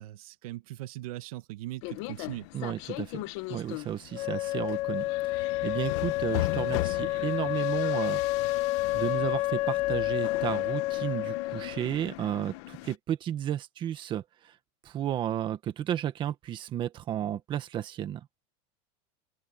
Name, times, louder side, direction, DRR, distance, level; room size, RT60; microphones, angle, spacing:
voice 1, 0.0-2.5, right 16 dB, 75° right, 1.7 m, -40 dB
sound 1, 1.8-13.0, left 19 dB, 55° left, 1.3 m, -39 dB
voice 2, 2.5-3.2 3.5-8.7 8.9-14.5 14.8-18.3, right 11 dB, 25° right, 1.6 m, -33 dB
Wind instrument woodwind instrument, 4.1-11.9, left 17 dB, 35° left, 0.8 m, -29 dB
open air
supercardioid pair, 170°, 18 cm